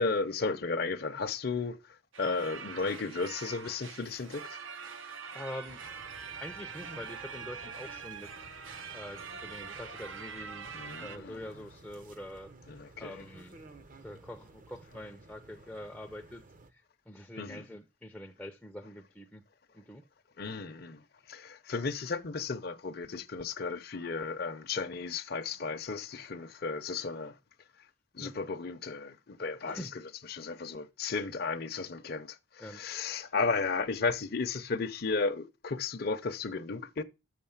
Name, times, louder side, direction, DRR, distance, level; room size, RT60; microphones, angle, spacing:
voice 1, 0.0-4.6 10.7-11.4 12.7-13.2 17.4-17.6 20.4-27.4 28.1-29.9 30.3-37.0, left 4 dB, 50° left, 0.6 m, -34 dB
sound 1, 2.1-11.2, right 6 dB, 75° right, 0.7 m, -44 dB
voice 2, 5.3-5.8 6.4-8.5 8.9-12.5 13.0-13.6 14.0-16.4 16.7-19.4 19.7-20.0 28.2-28.3 29.7-29.9 32.6-32.8, left 1 dB, 5° left, 0.5 m, -45 dB
sound 2, 5.7-16.7, right 2 dB, 40° right, 0.7 m, -54 dB
6.5 x 6.2 x 7.1 m
head